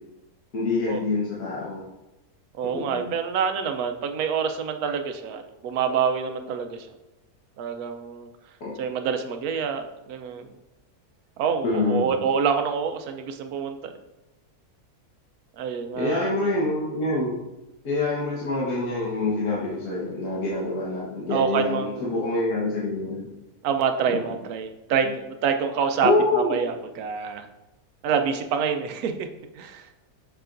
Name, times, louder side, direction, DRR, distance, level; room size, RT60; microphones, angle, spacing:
voice 1, 0.5-1.8 2.7-3.0 8.6-8.7 11.6-12.2 15.9-17.3 17.8-23.3 24.1-24.2 25.0-25.1 26.0-26.5, left 2 dB, 80° left, -7 dB, 1.8 m, -26 dB
voice 2, 2.6-6.9 7.6-8.3 8.8-10.5 11.4-13.9 15.6-16.3 21.3-22.0 23.6-27.5 28.0-29.3 29.5-29.9, right 6 dB, 75° right, 7 dB, 1.1 m, -27 dB
6.9 x 6.7 x 2.5 m, 1.0 s
omnidirectional pair, 1.6 m